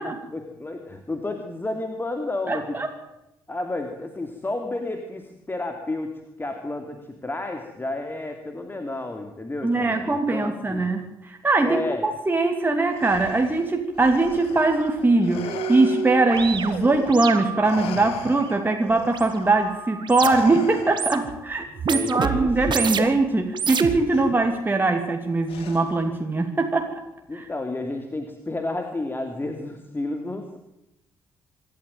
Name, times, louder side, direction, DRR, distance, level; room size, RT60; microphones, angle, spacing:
voice 1, 0.0-2.8 3.5-10.9 11.6-12.0 21.9-22.8 27.3-30.6, left 2 dB, 20° left, 5 dB, 2.7 m, -31 dB
voice 2, 2.5-2.9 9.6-27.0 27.3-27.4, right 3 dB, 20° right, 3 dB, 2.7 m, -22 dB
Respiratory sounds, 12.9-17.3 17.6-21.3 22.5-22.7 23.7-24.3 25.5-26.1, left 7 dB, 60° left, 2.3 m, -39 dB
sound 1, 14.6-14.7 15.0-20.6 20.9-21.4 21.8-23.2 23.5-24.4, right 6 dB, 45° right, 1.8 m, -30 dB
26.5 x 12.5 x 9.2 m, 0.90 s
figure-of-eight pair, 40°, 11 cm